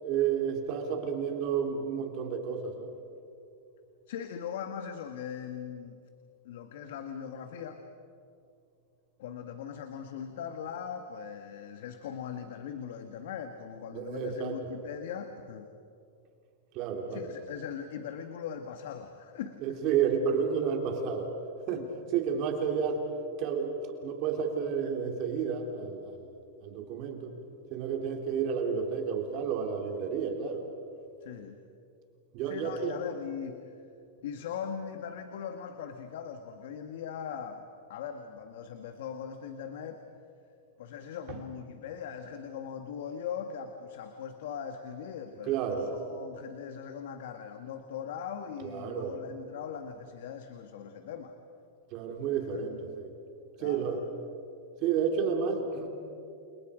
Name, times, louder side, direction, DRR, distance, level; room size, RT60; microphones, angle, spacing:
voice 1, 0.0-2.9 13.9-14.5 16.7-17.3 19.6-21.3 21.7-21.9 22.1-23.0 23.4-23.7 24.0-26.3 26.6-27.3 27.7-30.6 32.3-32.9 41.3-41.4 45.4-46.0 48.6-49.2 51.9-53.1 53.6-54.0 54.8-55.9, right 7 dB, 40° right, 3 dB, 3.4 m, -31 dB
voice 2, 4.1-6.0 6.4-7.8 9.2-15.7 17.1-19.8 21.7-21.9 31.2-31.6 32.4-33.8 34.2-37.6 37.9-40.0 40.8-51.4 53.6-54.1, left 8 dB, 70° left, 7 dB, 1.6 m, -40 dB
29.5 x 27.0 x 5.1 m, 2.5 s
supercardioid pair, 150°, 0 cm